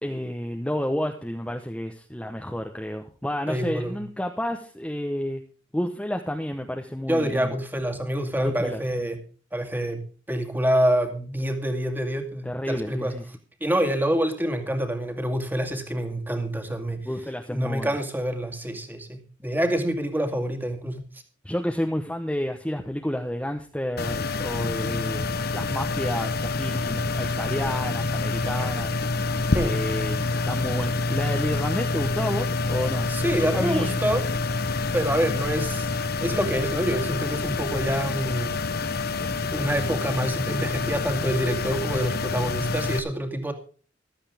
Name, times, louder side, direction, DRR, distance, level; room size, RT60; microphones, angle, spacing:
voice 1, 0.0-5.4 5.7-7.5 8.4-8.8 12.4-13.2 17.0-17.9 21.4-25.3 25.5-28.9 29.6-33.1 33.4-34.0, equal, 5° left, 4 dB, 1.0 m, -30 dB
voice 2, 3.5-3.9 7.1-9.2 9.5-13.2 13.6-17.1 17.5-21.0 29.5-29.8 33.1-34.3 34.9-35.9 36.2-38.5 39.5-43.5, right 1 dB, 10° right, 6 dB, 2.2 m, -26 dB
sound 1, 24.0-43.0, left 3 dB, 55° left, 1.0 m, -27 dB
15.0 x 12.5 x 3.5 m, 0.38 s
head